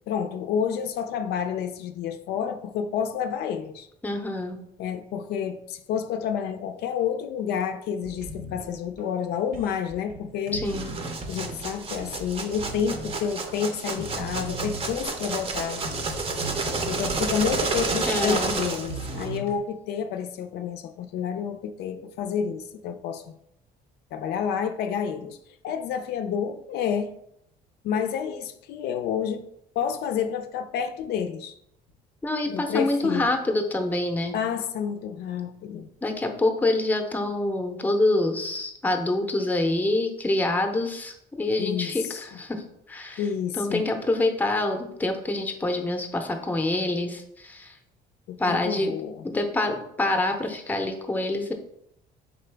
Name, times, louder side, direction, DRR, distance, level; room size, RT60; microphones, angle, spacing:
voice 1, 0.1-3.9 4.8-10.6 11.3-15.8 16.9-23.2 24.1-25.4 25.6-27.1 27.8-29.5 29.8-31.5 32.5-33.3 34.3-35.9 41.6-42.4 43.2-43.8 48.3-49.3, left 7 dB, 75° left, 7 dB, 0.4 m, -29 dB
voice 2, 4.0-4.6 10.5-10.9 18.1-18.6 32.2-34.3 36.0-42.6 42.9-43.2 43.5-47.7 48.4-48.9 49.2-51.5, left 2 dB, 10° left, 5 dB, 0.6 m, -26 dB
sound 1, 8.0-19.6, right 2 dB, 60° right, 0.9 m, -39 dB
sound 2, 10.6-19.4, right 4 dB, 35° right, 0.6 m, -30 dB
3.8 x 3.8 x 3.3 m, 0.76 s
cardioid pair, 110°, 17 cm